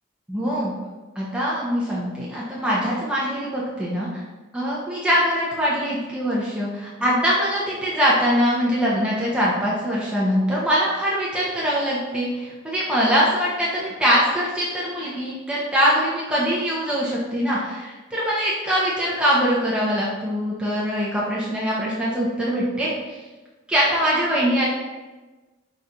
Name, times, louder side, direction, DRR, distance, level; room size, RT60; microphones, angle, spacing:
voice 1, 0.3-0.7 1.2-4.2 4.5-23.2 23.7-24.7, equal, 5° right, -6 dB, 0.5 m, -23 dB
4.1 x 2.3 x 3.8 m, 1.2 s
head